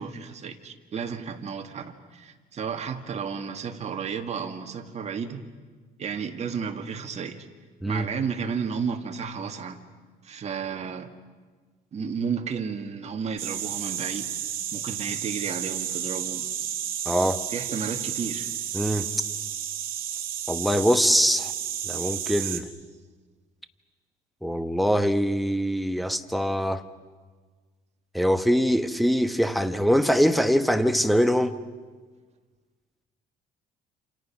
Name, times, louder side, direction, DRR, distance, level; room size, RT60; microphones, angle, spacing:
voice 1, 0.0-5.4 6.0-7.5 7.9-9.8 10.2-11.1 11.9-14.3 14.7-16.5 17.5-18.5, right 6 dB, 40° right, 5 dB, 2.0 m, -32 dB
sound 1, 13.4-22.6, right 10 dB, 60° right, 2.6 m, -32 dB
voice 2, 17.0-17.4 18.7-19.1 20.5-21.5 21.8-22.7 24.4-26.8 28.1-31.6, equal, ahead, 11 dB, 1.2 m, -23 dB
28.5 x 27.5 x 6.0 m, 1.4 s
cardioid pair, 110°, 17 cm